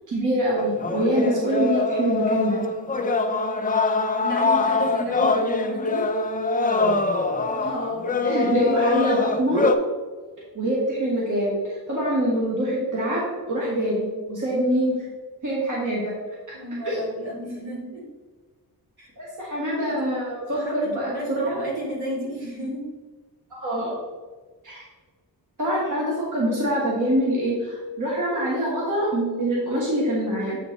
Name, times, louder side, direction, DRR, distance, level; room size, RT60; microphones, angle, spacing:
voice 1, 0.1-2.6 7.6-9.6 10.5-11.6 11.9-15.0 15.4-16.1 16.8-17.0 19.2-21.6 23.5-23.9 24.6-24.8 25.6-30.6, right 1 dB, 50° right, -6 dB, 1.8 m, -25 dB
sound 1, 0.6-9.8, left 3 dB, 25° left, 0.4 m, -23 dB
voice 2, 4.2-6.1 16.5-18.0 19.0-19.1 20.5-22.9, equal, 75° right, -5 dB, 2.2 m, -32 dB
7.8 x 4.4 x 4.1 m, 1.4 s
wide cardioid pair, 155°, 38 cm